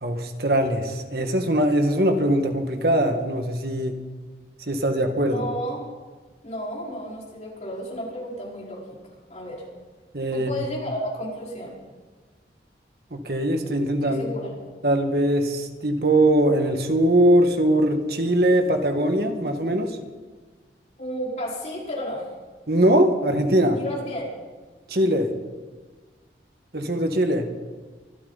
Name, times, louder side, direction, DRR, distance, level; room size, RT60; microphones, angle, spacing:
voice 1, 0.0-4.0 4.7-5.5 10.1-10.5 13.1-14.3 14.8-20.0 22.7-23.8 24.9-25.3 26.7-27.5, right 1 dB, 60° right, 5 dB, 1.7 m, -21 dB
voice 2, 5.3-5.8 6.4-8.8 9.3-9.6 10.3-11.8 14.0-14.5 21.0-22.3 23.8-24.3, equal, 40° left, -4 dB, 4.8 m, -32 dB
25.0 x 13.0 x 4.1 m, 1.4 s
head